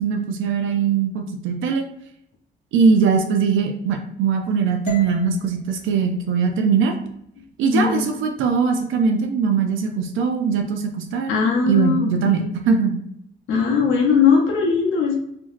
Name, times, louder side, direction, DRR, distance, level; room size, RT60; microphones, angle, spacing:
voice 1, 0.0-1.9 2.7-6.9 7.6-13.0, right 5 dB, 80° right, 4 dB, 0.4 m, -21 dB
sound 1, 4.9-9.0, left 4 dB, 40° left, 0.7 m, -42 dB
voice 2, 7.7-8.1 11.3-12.5 13.5-15.2, left 5 dB, 80° left, 1 dB, 0.6 m, -19 dB
2.8 x 2.6 x 2.4 m, 0.75 s
cardioid pair, 90°, 20 cm